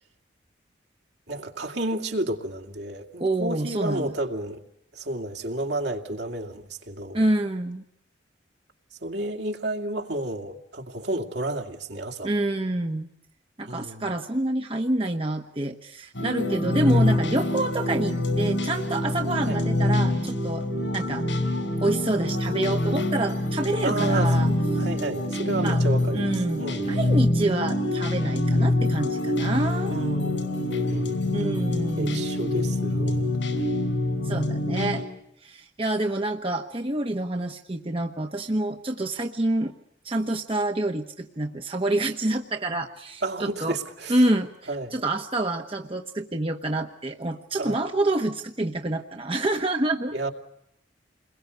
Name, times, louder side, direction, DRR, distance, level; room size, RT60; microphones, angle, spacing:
voice 1, 1.3-4.6 4.9-7.2 9.0-12.3 13.7-14.1 19.4-19.6 23.8-26.9 29.9-31.2 32.0-33.3 43.2-44.2 44.7-45.0 47.6-47.8 50.1-50.3, right 2 dB, 65° right, 2.5 m, -31 dB
voice 2, 3.2-4.1 7.1-7.8 12.2-13.1 13.6-20.7 20.9-21.3 21.8-24.5 24.7-24.9 25.6-25.8 26.1-29.9 31.3-32.3 34.2-35.0 35.4-39.7 40.0-43.8 44.1-50.1, right 2 dB, 30° right, 1.1 m, -27 dB
sound 1, 16.1-35.0, left 1 dB, 85° left, 5.3 m, -25 dB
29.5 x 21.5 x 8.1 m
head